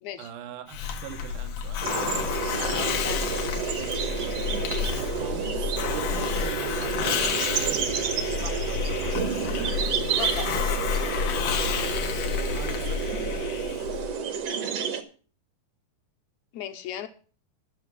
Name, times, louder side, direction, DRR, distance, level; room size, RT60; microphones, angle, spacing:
voice 1, 0.2-2.3 5.0-9.2 12.4-13.3, right 9 dB, 80° right, 2.7 m, -42 dB
Hiss, 0.7-14.2, left 7 dB, 85° left, 2.8 m, -30 dB
sound 1, 1.8-15.0, right 7 dB, 60° right, 1.9 m, -30 dB
voice 2, 3.0-3.4 10.1-10.5 16.5-17.1, left 11 dB, 70° left, 2.1 m, -36 dB
14.0 x 6.6 x 6.2 m
omnidirectional pair, 3.6 m